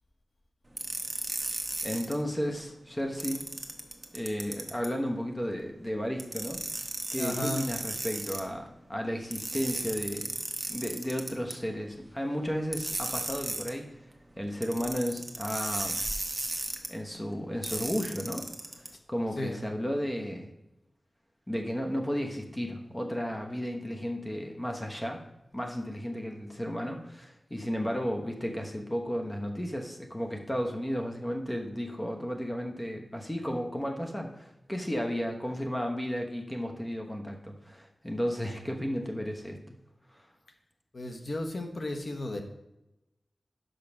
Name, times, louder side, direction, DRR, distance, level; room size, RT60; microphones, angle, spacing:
sound 1, 0.8-2.1 3.2-4.9 6.2-8.4 9.3-11.5 12.7-13.7 14.6-16.9 17.6-18.9, right 2 dB, 30° right, 1.0 m, -35 dB
voice 1, 1.8-3.4 4.1-6.6 7.1-10.4 10.7-13.9 14.4-16.0 16.9-18.5 18.8-20.5 21.5-25.2 25.5-39.7 40.1-40.3, equal, 15° left, 2 dB, 1.1 m, -33 dB
voice 2, 7.2-7.7 19.4-19.6 40.9-42.4, left 1 dB, 60° left, 4 dB, 1.1 m, -34 dB
5.7 x 5.3 x 5.9 m, 0.91 s
wide cardioid pair, 60°, 0 cm